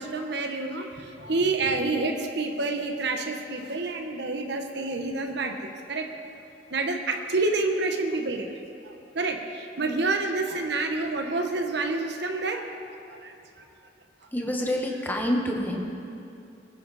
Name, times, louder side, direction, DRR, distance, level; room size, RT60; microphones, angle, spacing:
voice 1, 0.0-6.1 6.7-8.5 9.1-12.8 13.2-13.3, right 3 dB, 65° right, 4 dB, 1.2 m, -28 dB
voice 2, 14.3-15.9, equal, 10° left, 1 dB, 1.3 m, -27 dB
22.5 x 9.7 x 4.2 m, 2.6 s
head